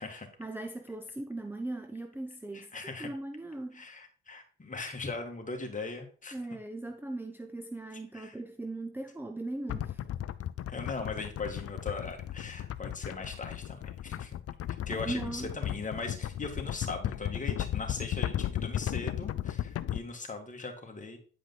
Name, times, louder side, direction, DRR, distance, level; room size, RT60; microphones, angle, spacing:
voice 1, 0.0-3.8 6.3-10.0 14.9-15.6, right 2 dB, 5° right, 0.6 m, -39 dB
voice 2, 2.5-3.1 3.7-6.3 8.1-8.4 10.7-13.8 14.0-14.3 14.9-21.2, left 3 dB, 25° left, 2.2 m, -39 dB
sound 1, 9.7-20.0, left 11 dB, 50° left, 0.5 m, -35 dB
9.5 x 5.0 x 4.1 m
cardioid pair, 90°, 30 cm